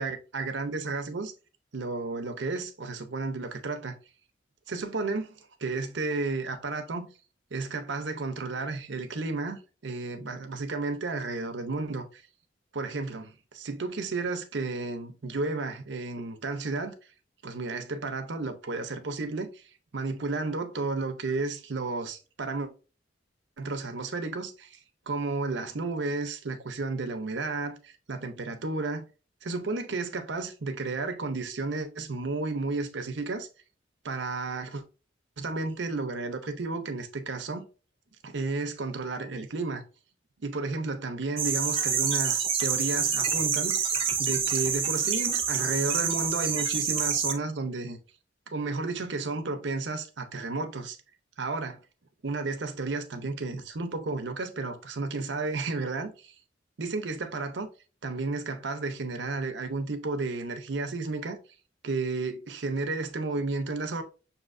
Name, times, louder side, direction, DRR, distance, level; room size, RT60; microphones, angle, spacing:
voice 1, 0.0-1.3 1.7-4.0 4.7-5.3 5.6-7.1 7.5-12.2 12.7-17.0 17.4-19.6 19.9-22.7 23.6-24.8 25.1-29.0 29.4-33.5 34.0-34.8 35.4-37.7 38.2-39.8 40.4-43.8 44.2-48.0 48.5-51.0 51.4-51.8 52.2-56.3 56.8-57.7 58.0-61.4 61.8-64.0, right 3 dB, 70° right, 0.7 m, -32 dB
sound 1, 41.4-47.3, right 7 dB, 30° right, 0.6 m, -27 dB
6.5 x 2.8 x 2.5 m
head